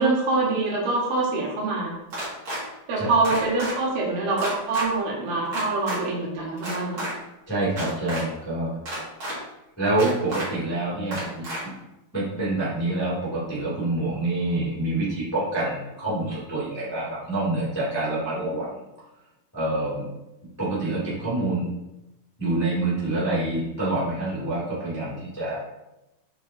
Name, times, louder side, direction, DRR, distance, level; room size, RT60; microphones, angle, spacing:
voice 1, 0.0-1.9 2.9-7.0, right 3 dB, 80° right, -3 dB, 3.5 m, -25 dB
sound 1, 2.1-2.6 3.2-3.7 4.4-4.9 5.5-6.0 6.6-7.1 7.7-8.2 8.9-9.3 10.0-10.5 11.1-11.6, right 1 dB, 40° right, 2.4 m, -31 dB
voice 2, 7.5-8.7 9.8-11.4 12.1-18.8 19.5-20.1 20.6-21.6 22.4-25.6, right 2 dB, 10° left, -8 dB, 1.0 m, -26 dB
7.1 x 5.6 x 2.7 m, 0.94 s
omnidirectional pair, 4.4 m